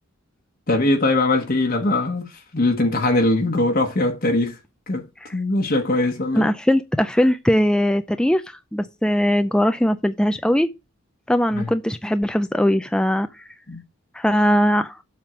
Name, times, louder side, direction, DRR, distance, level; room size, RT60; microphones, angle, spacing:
voice 1, 0.7-4.6 4.9-5.0 5.3-6.5 11.5-11.7 13.7-13.8, left 2 dB, 45° left, 1.0 m, -21 dB
voice 2, 6.3-8.4 8.7-10.7 11.3-13.5 14.1-14.9, equal, 5° left, 0.3 m, -20 dB
7.3 x 3.6 x 6.0 m
head